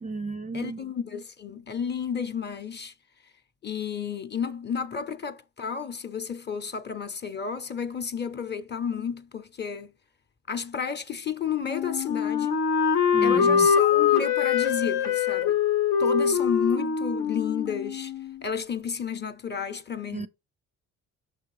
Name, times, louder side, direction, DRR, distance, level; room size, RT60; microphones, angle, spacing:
voice 1, 0.0-0.8 13.1-13.7 20.1-20.3, right 3 dB, 20° right, 0.4 m, -33 dB
voice 2, 0.5-2.9 3.6-9.9 10.5-12.6 13.2-15.6 16.0-18.1 18.4-20.3, left 6 dB, 35° left, 0.8 m, -32 dB
Wind instrument woodwind instrument, 11.6-18.4, left 7 dB, 75° left, 0.9 m, -23 dB
6.1 x 3.6 x 4.8 m
cardioid pair, 85°, 31 cm